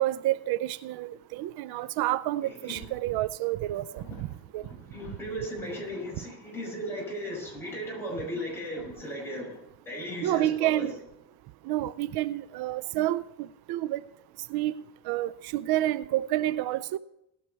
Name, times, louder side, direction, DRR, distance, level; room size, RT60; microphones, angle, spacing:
voice 1, 0.0-4.0 4.5-4.6 10.2-10.9 11.7-13.2 13.7-14.0 14.5-14.7 15.1-17.0, right 15 dB, 85° right, 0.5 m, -29 dB
voice 2, 2.4-2.8 3.9-4.3 4.6-9.5 9.9-10.9, equal, 5° left, 5.8 m, -36 dB
19.0 x 6.5 x 4.5 m
cardioid pair, 135°, 37 cm